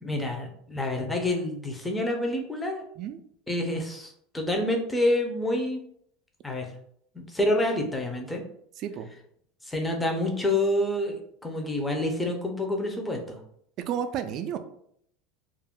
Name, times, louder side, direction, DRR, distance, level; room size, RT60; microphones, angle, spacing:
voice 1, 0.0-2.8 3.5-5.8 6.4-6.7 7.1-8.4 9.6-13.4, left 1 dB, 10° left, 2 dB, 0.5 m, -28 dB
voice 2, 8.8-9.1 13.9-14.6, right 8 dB, 45° right, 8 dB, 0.3 m, -31 dB
2.4 x 2.1 x 3.5 m, 0.68 s
supercardioid pair, 130°, 0 cm